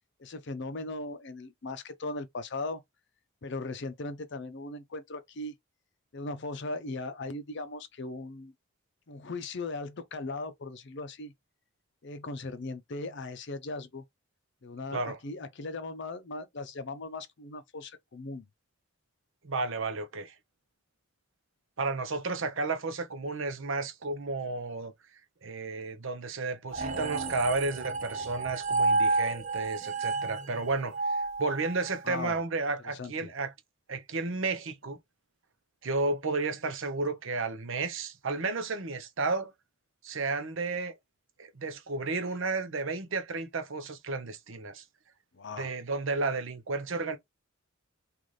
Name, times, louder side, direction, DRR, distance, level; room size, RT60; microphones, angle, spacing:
voice 1, 0.2-2.8 3.4-5.5 6.1-8.5 9.1-11.3 12.0-14.0 14.6-18.5 32.0-32.4 32.9-33.3 45.3-45.7, left 2 dB, 55° left, 0.6 m, -38 dB
voice 2, 19.4-20.4 21.8-24.9 25.4-33.5 33.9-35.0 35.8-39.5 40.0-40.9 41.4-44.8 45.6-47.2, right 3 dB, 60° right, 0.7 m, -32 dB
sound 1, 26.7-32.2, right 3 dB, 30° right, 0.5 m, -30 dB
3.9 x 2.5 x 3.1 m
head